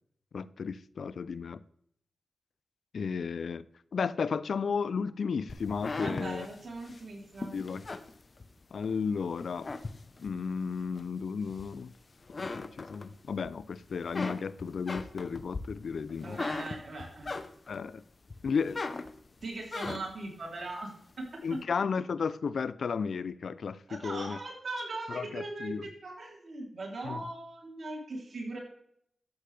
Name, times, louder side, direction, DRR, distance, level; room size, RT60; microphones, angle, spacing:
voice 1, 0.3-1.6 2.9-3.6 3.9-6.5 7.5-7.8 8.7-9.7 10.2-11.9 12.4-16.4 17.7-18.0 18.4-18.8 21.4-24.4 25.1-25.8 27.0-27.2, left 5 dB, 75° left, 0.4 m, -33 dB
sound 1, 5.5-8.9 9.3-10.4 10.9-11.9 12.2-13.5 13.8-17.9 18.3-20.3, left 3 dB, 50° left, 0.8 m, -39 dB
voice 2, 6.0-7.6 16.2-17.3 19.4-20.9 21.5-21.6 23.9-28.6, right 2 dB, 65° right, 3.3 m, -39 dB
12.5 x 8.3 x 3.4 m
cardioid pair, 45°, 0 cm